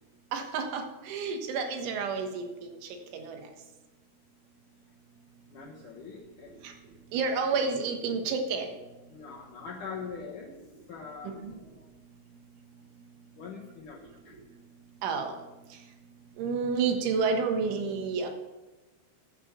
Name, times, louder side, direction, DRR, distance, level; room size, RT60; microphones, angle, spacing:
voice 1, 0.3-3.4 6.6-6.7 7.1-8.8 11.2-11.5 15.0-15.4 15.7-15.8 16.4-18.3, right 5 dB, 80° right, 4 dB, 3.7 m, -30 dB
voice 2, 5.5-6.6 6.9-7.3 9.1-10.5 10.9-11.9 13.3-14.4, left 5 dB, 70° left, -2 dB, 1.9 m, -43 dB
11.0 x 8.6 x 6.7 m, 1.1 s
omnidirectional pair, 5.5 m